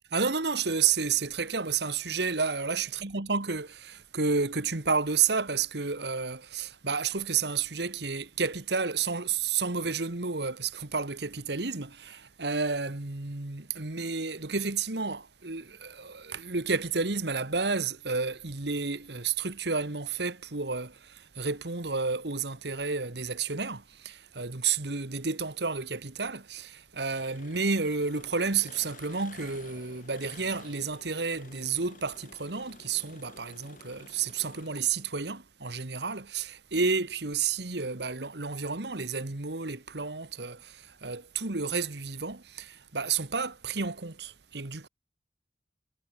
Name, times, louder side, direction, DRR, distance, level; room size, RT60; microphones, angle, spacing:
voice 1, 0.1-44.9, right 5 dB, 65° right, 1.8 m, -31 dB
Engine, 27.1-35.2, left 3 dB, 50° left, 4.2 m, -52 dB
head